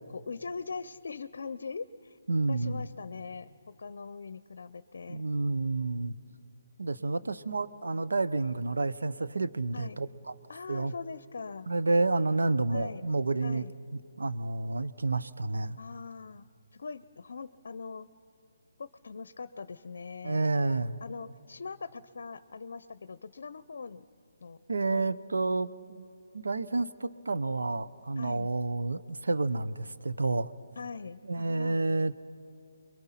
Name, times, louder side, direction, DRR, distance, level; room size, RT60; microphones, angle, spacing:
voice 1, 0.1-2.2 2.5-5.3 7.2-7.3 9.7-10.0 10.5-11.7 12.7-13.1 13.4-13.7 15.8-18.1 18.8-20.4 21.0-24.1 24.4-24.6 24.9-25.1 28.2-28.5 30.8-31.8, left 5 dB, 65° left, 16 dB, 0.6 m, -42 dB
voice 2, 2.3-2.8 5.1-6.1 6.8-10.1 10.7-10.9 11.7-13.6 14.2-15.8 20.2-21.0 24.7-26.1 26.3-30.5 31.3-32.2, right 3 dB, 90° right, 13 dB, 0.8 m, -29 dB
28.5 x 22.5 x 5.8 m, 2.4 s
hypercardioid pair, 160°, 0 cm